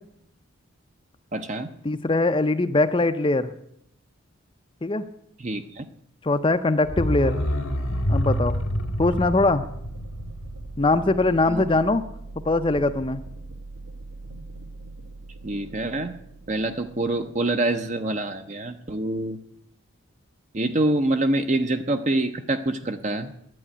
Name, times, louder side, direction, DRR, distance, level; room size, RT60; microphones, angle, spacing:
voice 1, 1.3-1.7 5.4-5.8 11.5-11.6 15.4-16.1 16.5-19.4 20.5-23.3, right 2 dB, 35° right, 7 dB, 0.6 m, -26 dB
voice 2, 1.8-3.5 4.8-5.0 6.2-7.4 8.1-8.6 9.0-9.6 10.8-12.0 12.5-13.2, left 2 dB, 25° left, 10 dB, 0.5 m, -21 dB
sound 1, 6.9-11.6 11.9-12.0, equal, 90° left, 2.2 m, -28 dB
sound 2, 7.5-19.5, right 2 dB, 85° right, 1.8 m, -42 dB
11.0 x 8.9 x 9.9 m, 0.74 s
head